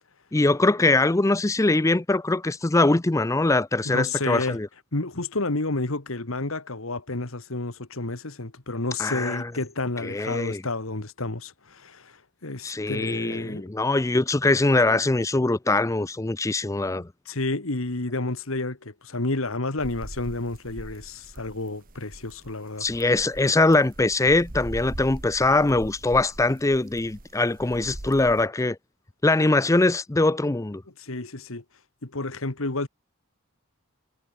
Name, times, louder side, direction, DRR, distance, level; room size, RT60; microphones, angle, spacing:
voice 1, 0.3-4.7 9.0-9.5 10.0-10.6 12.6-17.1 22.8-28.8 29.2-30.8, left 2 dB, 15° left, 0.5 m, -22 dB
voice 2, 3.9-4.6 4.9-12.1 12.4-13.6 14.9-15.0 17.3-22.9 31.0-31.6 32.0-32.9, left 2 dB, 70° left, 1.9 m, -30 dB
sound 1, 19.8-28.5, right 1 dB, 40° right, 1.5 m, -41 dB
head